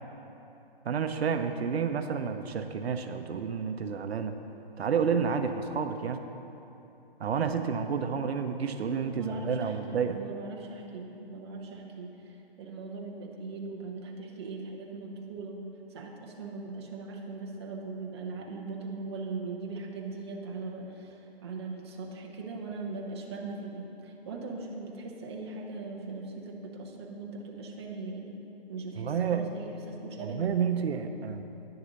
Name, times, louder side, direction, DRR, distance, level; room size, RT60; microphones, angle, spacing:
voice 1, 0.8-4.3 4.8-6.2 7.2-10.2 29.0-29.5 30.2-31.4, right 6 dB, 85° right, 8 dB, 0.6 m, -30 dB
voice 2, 9.1-15.6 15.9-28.3 28.7-30.4, right 3 dB, 25° right, -1 dB, 0.7 m, -40 dB
9.7 x 6.7 x 4.0 m, 3.0 s
hypercardioid pair, 160°, 31 cm